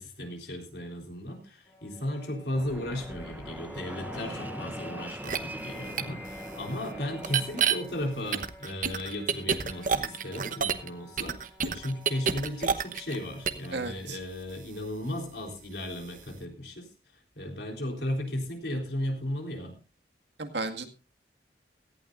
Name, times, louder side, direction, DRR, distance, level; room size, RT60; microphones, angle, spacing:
voice 1, 0.0-11.4 11.6-16.9 17.4-19.8, left 1 dB, 70° left, 2 dB, 3.8 m, -35 dB
sound 1, 1.7-15.6, left 1 dB, 15° left, 2.4 m, -49 dB
Fixed-wing aircraft airplane, 2.5-8.2, right 1 dB, 10° right, 0.6 m, -42 dB
sound 2, 5.2-5.4 6.0-6.1 7.2-7.7 8.3-10.9 11.2-13.2 13.4-13.7, right 7 dB, 45° right, 1.0 m, -28 dB
voice 2, 13.7-14.2 20.4-20.9, right 3 dB, 80° right, 6 dB, 2.0 m, -34 dB
17.5 x 15.0 x 2.6 m, 0.31 s
head